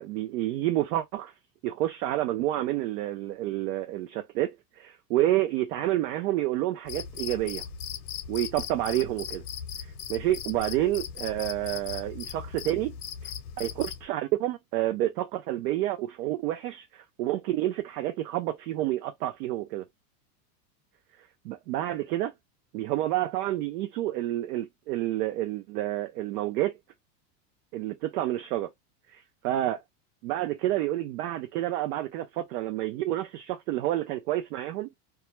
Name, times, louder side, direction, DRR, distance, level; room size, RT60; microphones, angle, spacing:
voice 1, 0.0-1.3 1.6-7.6 8.3-9.4 9.8-12.9 13.2-13.3 13.6-19.9 21.4-22.3 22.7-26.7 27.7-28.7 29.1-29.8 30.2-35.0, right 14 dB, 70° right, 0.5 m, -29 dB
Cricket, 6.9-14.1, left 8 dB, 65° left, 0.7 m, -38 dB
2.3 x 2.1 x 2.9 m
supercardioid pair, 145°, 49 cm